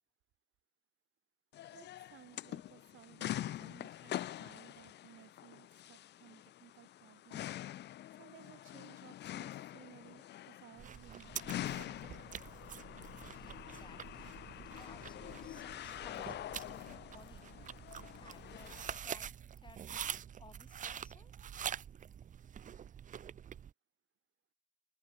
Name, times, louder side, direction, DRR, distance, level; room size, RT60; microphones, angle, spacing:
sound 1, 1.5-19.0, left 13 dB, 60° left, 0.4 m, -45 dB
voice 1, 1.7-7.5 8.1-11.4, right 13 dB, 80° right, 7.1 m, -59 dB
sound 2, 10.8-23.7, right 9 dB, 40° right, 0.5 m, -46 dB
voice 2, 13.3-17.4 18.1-19.3 19.6-21.3, left 3 dB, 25° left, 2.8 m, -60 dB
cardioid pair, 90°, 20 cm